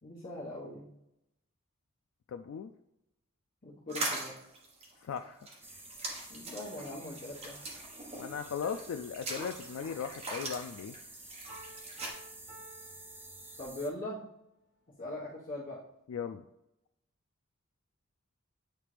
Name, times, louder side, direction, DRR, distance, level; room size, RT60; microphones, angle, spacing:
voice 1, 0.0-0.9 3.6-4.3 6.3-7.7 13.6-14.2 15.0-15.8, left 1 dB, 45° left, -7 dB, 1.3 m, -41 dB
voice 2, 2.3-2.7 5.0-5.4 8.2-10.9 16.1-16.4, left 7 dB, 75° left, 7 dB, 0.3 m, -38 dB
sound 1, 3.9-12.1, right 2 dB, 30° right, 1.1 m, -41 dB
sound 2, 5.6-13.9, right 2 dB, 10° right, 0.5 m, -51 dB
Piano, 11.5-14.1, right 1 dB, 60° right, 1.3 m, -54 dB
8.8 x 3.3 x 3.3 m, 0.83 s
head